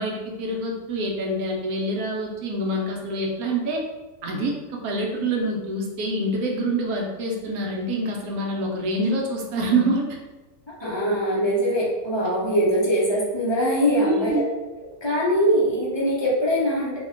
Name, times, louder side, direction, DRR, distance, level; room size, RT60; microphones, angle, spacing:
voice 1, 0.0-3.8 4.2-10.1 14.0-14.5, right 1 dB, 80° right, 0 dB, 1.1 m, -26 dB
voice 2, 10.8-14.4 15.0-17.0, equal, 30° left, -6 dB, 0.5 m, -22 dB
2.9 x 2.2 x 3.6 m, 1.1 s
omnidirectional pair, 1.6 m